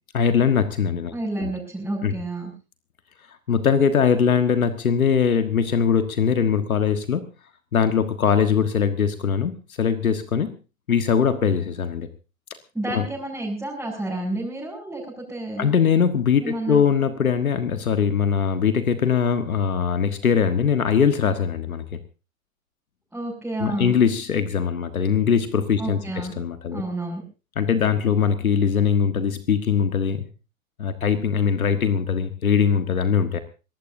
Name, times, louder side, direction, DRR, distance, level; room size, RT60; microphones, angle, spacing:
voice 1, 0.1-1.1 1.4-1.5 2.0-2.1 3.5-7.3 7.7-10.5 10.9-12.1 12.9-13.1 15.6-22.0 23.6-26.0 26.4-26.8 27.5-30.3 30.8-33.4, left 7 dB, 80° left, 9 dB, 1.5 m, -21 dB
voice 2, 1.1-2.5 12.7-15.7 16.4-16.8 23.1-23.9 25.8-26.3 26.7-27.2, right 2 dB, 5° right, -6 dB, 6.3 m, -30 dB
23.0 x 18.5 x 2.7 m, 0.33 s
figure-of-eight pair, 95°, 42 cm